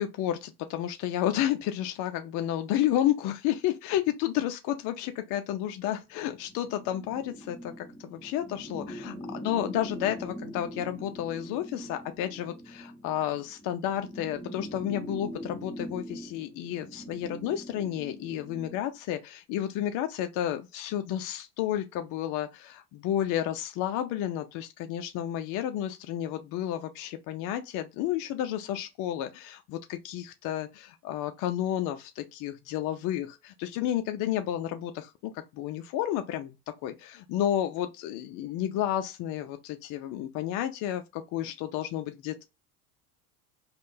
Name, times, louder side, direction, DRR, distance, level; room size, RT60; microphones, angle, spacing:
voice 1, 0.0-36.6 36.8-42.5, left 11 dB, 45° left, 0.5 m, -31 dB
sound 1, 6.4-18.9, equal, ahead, 0.8 m, -42 dB
3.5 x 2.2 x 2.6 m
hypercardioid pair, 95°, 44 cm